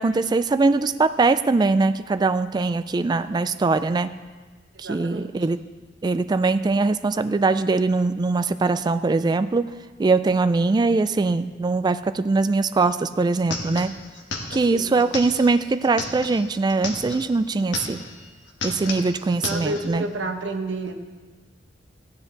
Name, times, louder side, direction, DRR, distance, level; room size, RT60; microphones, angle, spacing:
voice 1, 0.0-4.1 4.8-5.6 6.0-9.7 10.0-13.9 14.5-18.0 18.6-20.1, right 3 dB, 25° right, 12 dB, 0.3 m, -22 dB
voice 2, 4.7-5.3 14.7-15.0 19.3-20.9, right 2 dB, 75° right, 5 dB, 1.1 m, -30 dB
sound 1, 12.8-12.9 13.1-17.3 17.6-18.2 18.5-19.9, left 3 dB, 75° left, 1.5 m, -33 dB
15.0 x 9.7 x 3.9 m, 1.4 s
head